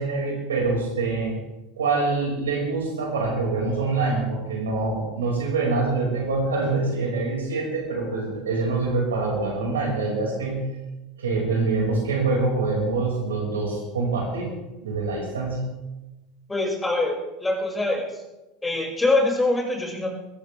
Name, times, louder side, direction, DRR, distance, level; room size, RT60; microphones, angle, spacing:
voice 1, 0.0-1.4 1.8-10.7 11.2-14.5 14.8-15.6, right 3 dB, 80° right, -1 dB, 5.6 m, -25 dB
voice 2, 16.5-18.2 18.6-20.1, left 2 dB, 15° left, 0 dB, 5.9 m, -24 dB
21.5 x 15.0 x 3.5 m, 1.1 s
hypercardioid pair, 80°, 0 cm